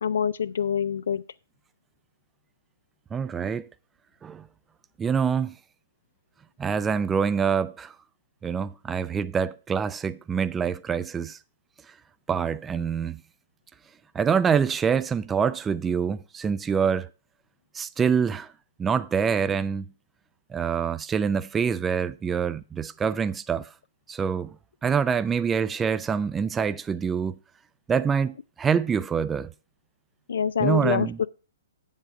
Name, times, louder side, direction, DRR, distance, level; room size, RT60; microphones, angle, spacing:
voice 1, 0.0-1.2 30.3-31.3, left 7 dB, 75° left, 0.3 m, -25 dB
voice 2, 3.1-3.7 4.2-4.5 5.0-5.5 6.6-7.9 8.4-11.4 12.3-13.2 14.1-17.1 17.7-18.5 18.8-19.9 20.5-23.7 24.1-24.5 24.8-27.4 27.9-29.5 30.6-31.2, right 6 dB, 15° right, 0.4 m, -25 dB
7.8 x 7.3 x 4.7 m
hypercardioid pair, 135°, 0 cm